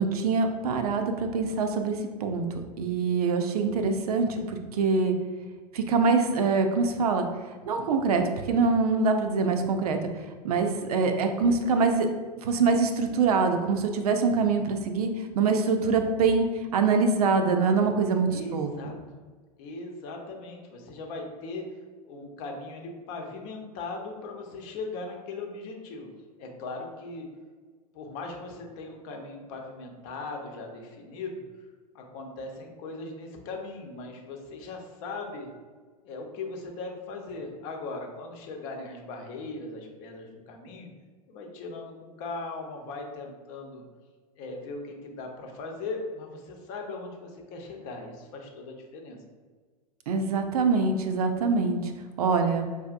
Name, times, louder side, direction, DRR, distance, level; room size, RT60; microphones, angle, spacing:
voice 1, 0.0-5.2 5.7-7.3 7.7-10.0 10.4-12.1 12.4-15.1 15.3-16.5 16.7-18.7 50.1-51.9 52.2-52.7, right 4 dB, 70° right, 6 dB, 0.5 m, -24 dB
voice 2, 18.3-18.9 19.6-21.6 22.0-26.1 26.4-27.3 27.9-31.4 31.9-35.5 36.0-40.9 41.3-43.8 44.4-49.2, left 3 dB, 50° left, 2 dB, 0.8 m, -39 dB
4.7 x 2.6 x 2.5 m, 1.4 s
hypercardioid pair, 95°, 20 cm